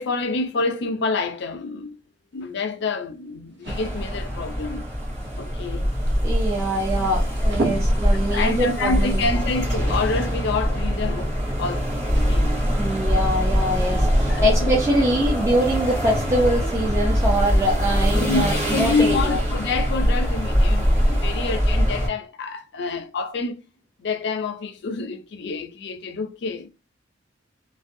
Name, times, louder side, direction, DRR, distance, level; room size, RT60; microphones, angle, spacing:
voice 1, 0.0-2.0 2.3-4.9 5.4-5.9 8.3-12.5 13.4-13.5 14.3-14.8 18.1-23.6 24.0-26.7, left 3 dB, 65° left, 0.5 m, -27 dB
sound 1, 2.3-15.7, right 1 dB, 65° right, 0.8 m, -38 dB
sound 2, 3.7-22.1, equal, 40° right, 1.8 m, -23 dB
voice 2, 6.2-9.2 12.8-19.4, equal, 15° right, 0.6 m, -24 dB
3.4 x 2.2 x 2.6 m
head